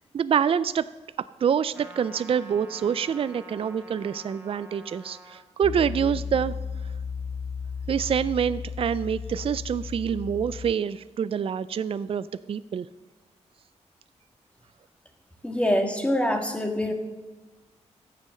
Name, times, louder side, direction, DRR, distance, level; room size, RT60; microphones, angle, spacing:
voice 1, 0.1-0.9 1.4-6.5 7.9-12.9, right 7 dB, 50° right, 15 dB, 0.4 m, -26 dB
Trumpet, 1.7-5.4, right 1 dB, 15° right, 1.6 m, -47 dB
Piano, 5.6-10.7, left 6 dB, 35° left, 0.4 m, -34 dB
voice 2, 15.4-16.9, left 1 dB, 10° left, 5 dB, 1.8 m, -25 dB
13.5 x 7.6 x 6.4 m, 1.2 s
cardioid pair, 95°, 12 cm